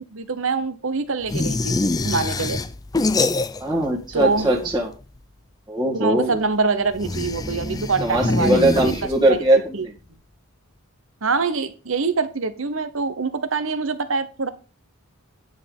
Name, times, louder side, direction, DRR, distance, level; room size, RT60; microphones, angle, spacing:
voice 1, 0.1-1.8 2.0-2.6 4.1-4.5 5.9-8.9 9.2-9.4 9.7-9.9 11.2-14.5, right 4 dB, 65° right, 12 dB, 1.0 m, -24 dB
sound 1, 1.3-3.9 4.1-4.9 6.9-9.5, left 2 dB, 15° left, 0.4 m, -25 dB
voice 2, 3.6-4.9 5.7-6.4 8.0-9.8, right 1 dB, 20° right, -3 dB, 1.9 m, -20 dB
9.9 x 5.0 x 5.4 m, 0.35 s
head